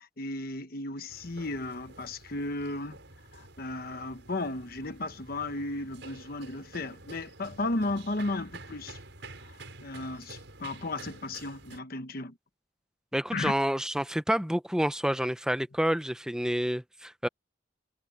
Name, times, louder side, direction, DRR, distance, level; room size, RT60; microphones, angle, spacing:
voice 1, 0.0-3.0 3.3-9.0 9.4-12.3 13.3-13.5, left 2 dB, 50° left, 1.1 m, -35 dB
sound 1, 1.1-11.8, right 2 dB, 70° right, 6.1 m, -49 dB
voice 2, 13.1-17.3, equal, 5° right, 0.7 m, -28 dB
head